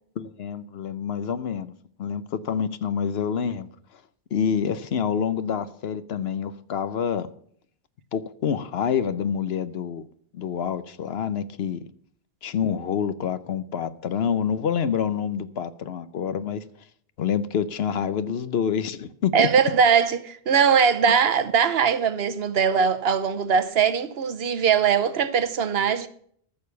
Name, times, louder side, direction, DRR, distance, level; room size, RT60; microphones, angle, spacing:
voice 1, 0.2-1.7 2.0-3.7 4.3-7.3 8.1-10.0 10.3-11.8 12.4-16.6 17.2-19.5, left 7 dB, 80° left, 1.0 m, -27 dB
voice 2, 19.3-26.1, right 7 dB, 75° right, 1.1 m, -21 dB
14.0 x 6.7 x 6.9 m
omnidirectional pair, 1.0 m